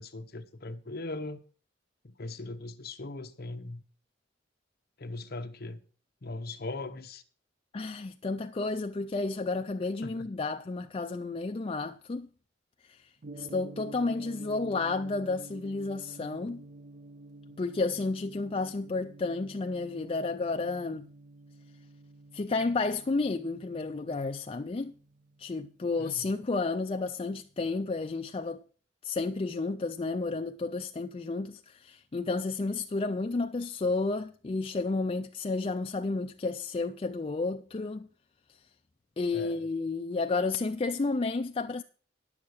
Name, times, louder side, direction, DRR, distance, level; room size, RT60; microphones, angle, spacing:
voice 1, 0.0-1.4 2.0-3.8 5.0-5.8 6.2-7.2 10.0-10.3 26.0-26.4 39.3-39.6, left 2 dB, 50° left, 0.9 m, -40 dB
voice 2, 7.7-12.3 12.8-13.1 13.4-16.6 17.6-21.1 22.3-24.9 25.4-28.6 29.0-38.1 38.5-38.6 39.2-41.8, left 3 dB, 30° left, 0.4 m, -31 dB
Gong, 13.2-27.4, right 2 dB, 40° right, 0.5 m, -50 dB
10.5 x 7.2 x 6.5 m
head